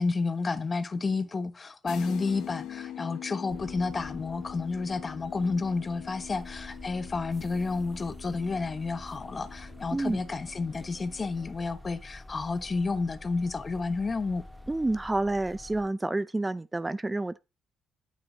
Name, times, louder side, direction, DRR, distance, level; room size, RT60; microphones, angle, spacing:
voice 1, 0.0-14.4, left 4 dB, 30° left, 1.1 m, -31 dB
sound 1, 1.9-11.5, left 11 dB, 85° left, 0.9 m, -43 dB
sound 2, 3.5-15.9, left 1 dB, ahead, 1.2 m, -47 dB
voice 2, 9.9-10.2 14.7-17.4, right 2 dB, 15° right, 0.5 m, -29 dB
9.5 x 8.8 x 4.0 m
cardioid pair, 90°, 0 cm